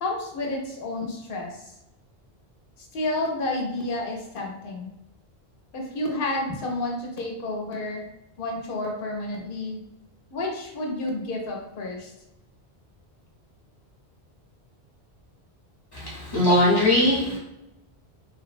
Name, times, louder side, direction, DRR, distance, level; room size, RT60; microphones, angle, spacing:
voice 1, 0.0-1.7 2.9-4.9 5.7-8.0 8.4-9.8 10.3-12.1, left 2 dB, 60° left, 0 dB, 0.8 m, -30 dB
voice 2, 15.9-17.4, left 1 dB, 25° left, -6 dB, 0.8 m, -20 dB
2.8 x 2.1 x 2.4 m, 0.92 s
omnidirectional pair, 1.1 m